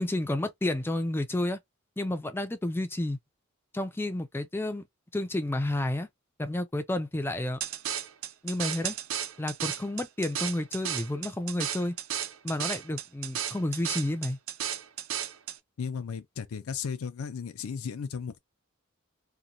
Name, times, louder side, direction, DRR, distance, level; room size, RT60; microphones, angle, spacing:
voice 1, 0.0-1.6 2.0-3.2 3.7-4.8 5.1-6.1 6.4-7.6 8.4-9.0 9.4-11.9 12.4-14.4, left 1 dB, 10° left, 0.4 m, -30 dB
sound 1, 7.6-15.6, right 10 dB, 70° right, 0.4 m, -34 dB
voice 2, 15.8-18.4, left 6 dB, 85° left, 0.4 m, -35 dB
2.9 x 2.2 x 2.4 m
head